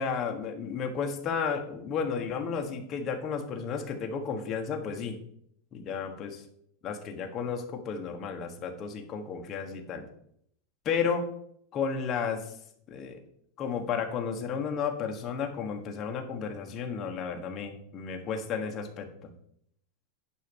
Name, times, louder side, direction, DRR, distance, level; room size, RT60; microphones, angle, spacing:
voice 1, 0.0-5.2 5.7-6.4 6.8-10.1 10.8-11.3 11.7-12.5 12.9-13.2 13.6-19.1, left 6 dB, 25° left, 3 dB, 1.4 m, -33 dB
10.0 x 5.6 x 5.5 m, 0.69 s
supercardioid pair, 170°, 0 cm